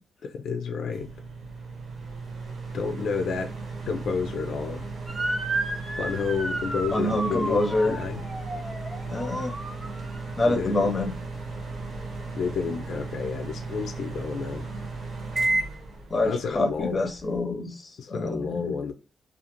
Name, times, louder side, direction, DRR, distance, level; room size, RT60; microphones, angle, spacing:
voice 1, 0.2-1.1 2.7-3.5 3.8-4.9 6.0-8.2 10.5-10.9 12.4-14.7 16.2-17.0 18.0-18.9, left 5 dB, 70° left, 0.4 m, -30 dB
sound 1, 0.9-17.4, right 3 dB, 55° right, 1.0 m, -35 dB
Motor vehicle (road) / Siren, 5.1-10.3, right 2 dB, 25° right, 0.9 m, -33 dB
voice 2, 6.9-8.0 9.1-9.6 10.4-11.1 16.1-18.7, left 2 dB, 30° left, 0.6 m, -26 dB
2.5 x 2.4 x 2.8 m
wide cardioid pair, 145°, 0 cm